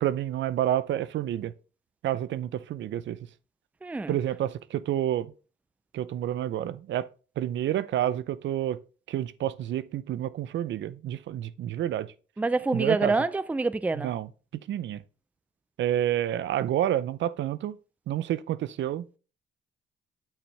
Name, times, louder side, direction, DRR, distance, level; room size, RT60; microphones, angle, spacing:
voice 1, 0.0-1.5 2.0-3.2 4.1-5.3 5.9-7.1 7.4-8.8 9.1-12.1 12.7-13.1 13.9-14.3 14.7-15.0 15.8-17.8 18.1-19.2, right 11 dB, 70° right, 0.6 m, -29 dB
voice 2, 3.8-4.2 12.4-14.1, right 3 dB, 5° right, 0.4 m, -26 dB
8.3 x 6.2 x 3.3 m
cardioid pair, 90°, 20 cm